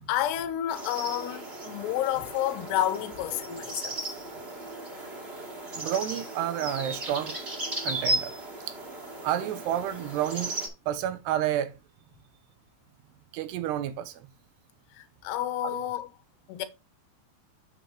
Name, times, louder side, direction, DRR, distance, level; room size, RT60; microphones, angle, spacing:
voice 1, 0.0-4.0 14.9-16.1 16.5-16.7, left 12 dB, 80° left, 2.9 m, -30 dB
sound 1, 0.7-10.7, right 2 dB, 30° right, 1.0 m, -35 dB
voice 2, 5.7-7.4 7.8-8.3 8.7-8.8 9.2-10.5 10.9-11.7 13.3-14.3 15.6-15.9, right 11 dB, 80° right, 2.7 m, -30 dB
7.6 x 7.2 x 3.0 m
omnidirectional pair, 5.1 m